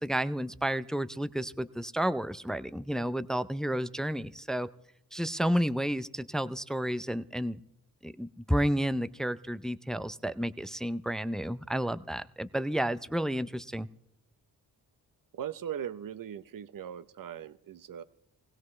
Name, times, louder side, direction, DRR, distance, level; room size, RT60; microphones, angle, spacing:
voice 1, 0.0-4.7 5.1-7.6 8.0-13.9, equal, ahead, 14 dB, 0.5 m, -31 dB
voice 2, 15.3-18.0, right 9 dB, 55° right, 13 dB, 0.8 m, -39 dB
20.0 x 16.5 x 3.2 m, 0.74 s
cardioid pair, 65°, 39 cm